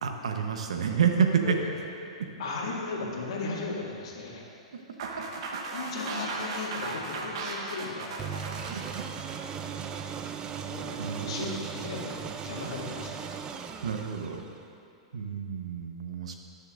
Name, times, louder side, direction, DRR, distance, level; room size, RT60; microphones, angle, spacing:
voice 1, 0.0-1.6 2.2-2.3 8.7-8.8 11.0-11.5 13.8-14.4 15.1-16.3, right 7 dB, 75° right, 4 dB, 1.0 m, -28 dB
voice 2, 2.4-4.4 5.1-5.2 5.7-8.2 10.7-13.3, left 3 dB, 65° left, -3 dB, 2.2 m, -36 dB
sound 1, 5.0-10.1, right 3 dB, 60° right, 1.3 m, -37 dB
sound 2, 8.2-14.7, right 7 dB, 25° right, 0.5 m, -38 dB
18.5 x 6.8 x 2.5 m, 2.6 s
hypercardioid pair, 110°, 3 cm